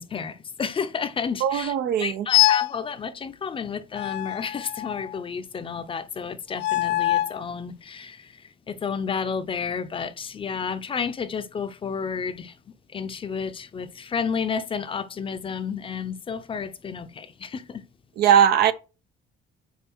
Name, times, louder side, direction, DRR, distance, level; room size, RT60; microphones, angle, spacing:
voice 1, 0.0-1.7 2.0-17.8, left 6 dB, 30° left, 0.6 m, -31 dB
voice 2, 1.4-2.3 18.2-18.7, right 9 dB, 70° right, 0.7 m, -19 dB
sound 1, 2.3-2.8 3.9-5.2 6.5-7.4, left 16 dB, 85° left, 0.4 m, -23 dB
5.6 x 3.9 x 6.0 m
cardioid pair, 110°, 17 cm